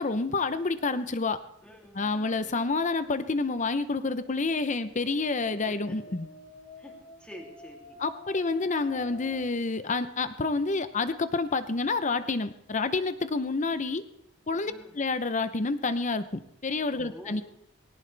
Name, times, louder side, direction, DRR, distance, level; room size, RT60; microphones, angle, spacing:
voice 1, 0.0-1.4 1.9-6.3 8.0-14.0 14.5-17.4, left 3 dB, 40° left, 12 dB, 0.7 m, -28 dB
voice 2, 1.6-2.0 5.5-6.2 6.8-8.0 14.6-15.0 17.0-17.4, equal, 5° left, 0 dB, 2.9 m, -48 dB
sound 1, 2.0-9.4, left 4 dB, 75° left, 6.2 m, -50 dB
20.0 x 17.5 x 3.4 m, 0.76 s
head